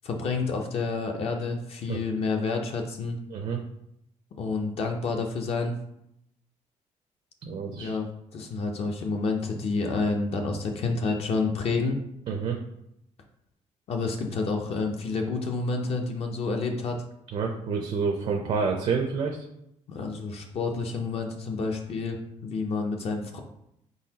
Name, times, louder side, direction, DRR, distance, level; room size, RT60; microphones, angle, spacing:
voice 1, 0.0-3.2 4.4-5.7 7.8-12.0 13.9-17.0 19.9-23.4, left 4 dB, 50° left, 3 dB, 0.5 m, -29 dB
voice 2, 7.4-8.0 12.3-12.6 17.3-19.4, right 5 dB, 55° right, 2 dB, 0.5 m, -28 dB
4.4 x 3.9 x 2.8 m, 0.79 s
cardioid pair, 170°, 13 cm